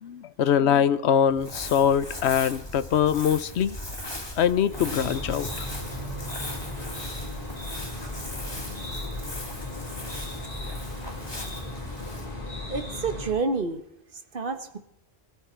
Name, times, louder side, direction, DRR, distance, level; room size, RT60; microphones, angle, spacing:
voice 1, 0.0-3.8 4.4-5.7, left 8 dB, 90° left, 15 dB, 1.0 m, -23 dB
Crumpling crinkling, 1.3-13.7, left 1 dB, 25° left, 1.9 m, -39 dB
sound 1, 4.7-13.3, left 1 dB, 50° left, 4.7 m, -36 dB
voice 2, 12.7-13.8 14.3-14.8, right 4 dB, 55° right, 8 dB, 1.5 m, -29 dB
21.0 x 13.0 x 4.5 m, 0.79 s
omnidirectional pair, 1.1 m